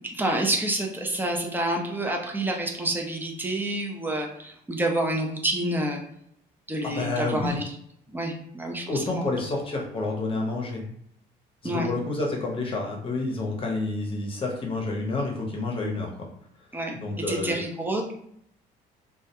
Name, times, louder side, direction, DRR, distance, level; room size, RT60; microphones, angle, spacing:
voice 1, 0.1-6.0 6.7-7.6 8.1-9.2 11.6-11.9 16.7-16.9 17.3-18.0, right 1 dB, 10° right, 1 dB, 0.5 m, -28 dB
voice 2, 6.8-7.6 8.9-10.8 11.6-16.1 16.9-17.6, left 3 dB, 30° left, 0 dB, 0.8 m, -29 dB
2.3 x 2.1 x 2.8 m, 0.69 s
cardioid pair, 110°, 17 cm